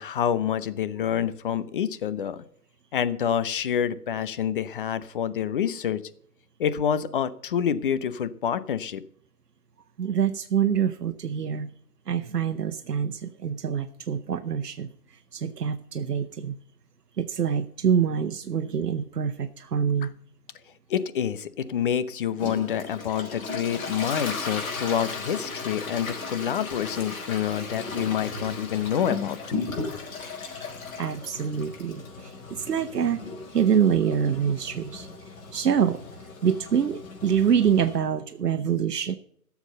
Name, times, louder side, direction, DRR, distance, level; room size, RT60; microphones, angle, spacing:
voice 1, 0.0-2.5 2.9-6.0 6.6-9.0 20.9-29.4 29.8-29.9, left 9 dB, 35° left, 14 dB, 0.7 m, -27 dB
voice 2, 10.0-11.7 12.1-14.9 15.3-16.6 17.2-20.1 30.5-30.7 31.0-33.2 33.5-35.1 35.5-36.0 36.4-39.1, right 8 dB, 85° right, 8 dB, 1.0 m, -25 dB
Toilet flush, 22.4-38.0, left 4 dB, 60° left, 4.5 m, -36 dB
13.0 x 7.2 x 6.6 m, 0.64 s
hypercardioid pair, 150°, 46 cm